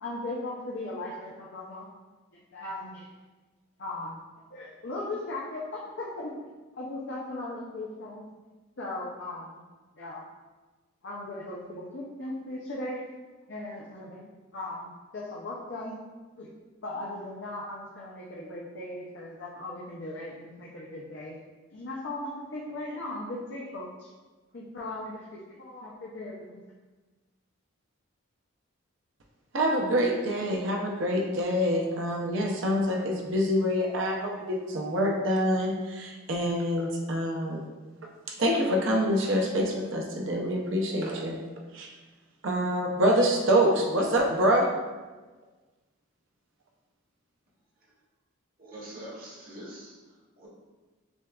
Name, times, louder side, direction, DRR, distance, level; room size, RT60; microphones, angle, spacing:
voice 1, 0.0-1.9 2.5-3.1 3.8-4.2 4.5-8.2 8.8-9.6 10.0-10.2 11.0-13.0 13.5-16.0 16.4-16.5 16.8-21.4 21.7-24.1 24.5-26.6, left 2 dB, 55° left, -5 dB, 0.5 m, -38 dB
voice 2, 29.5-37.7 38.3-41.4 41.7-41.9 42.4-44.7, equal, 60° right, 0 dB, 0.6 m, -26 dB
voice 3, 48.6-50.5, right 1 dB, 40° right, -6 dB, 0.9 m, -44 dB
6.1 x 2.4 x 2.3 m, 1.3 s
head